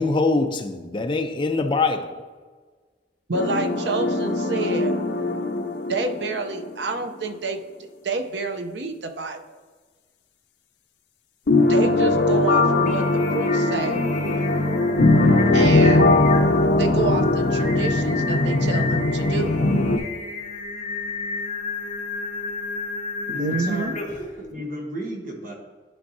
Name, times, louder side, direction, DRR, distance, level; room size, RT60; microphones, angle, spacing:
voice 1, 0.0-2.3, left 3 dB, 30° left, 0.5 m, -23 dB
sound 1, 3.3-6.7 7.0-7.1 11.5-20.0, left 2 dB, 75° left, 0.7 m, -20 dB
voice 2, 3.3-5.0 5.9-7.6 8.0-9.6 11.7-13.0 13.3-14.0 15.5-16.2 16.8-19.5 23.3-23.9, right 3 dB, 75° right, 0.7 m, -28 dB
Singing, 12.6-24.4, left 4 dB, 45° left, 1.0 m, -32 dB
voice 3, 23.3-24.0 24.4-25.5, equal, 50° right, 1.3 m, -33 dB
11.5 x 4.6 x 2.7 m
head